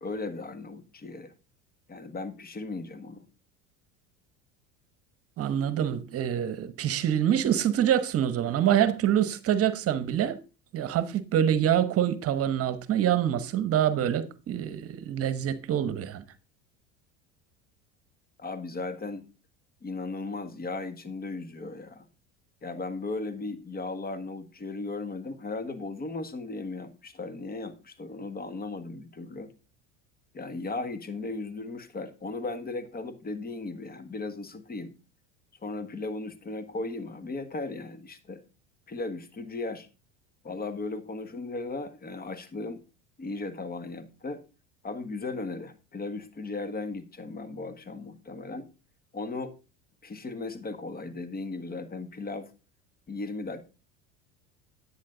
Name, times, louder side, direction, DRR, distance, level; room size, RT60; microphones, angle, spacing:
voice 1, 0.0-1.3 1.9-3.3 18.4-19.2 19.8-22.1 22.6-29.5 30.3-34.9 35.6-38.4 38.9-39.9 40.4-42.8 43.2-44.4 44.8-48.7 49.1-49.5 50.0-52.5 53.1-53.7, left 3 dB, 30° left, 1.6 m, -36 dB
voice 2, 5.4-10.4 10.7-16.2, right 10 dB, 45° right, 1.1 m, -26 dB
10.5 x 8.5 x 3.9 m
supercardioid pair, 100°, 33 cm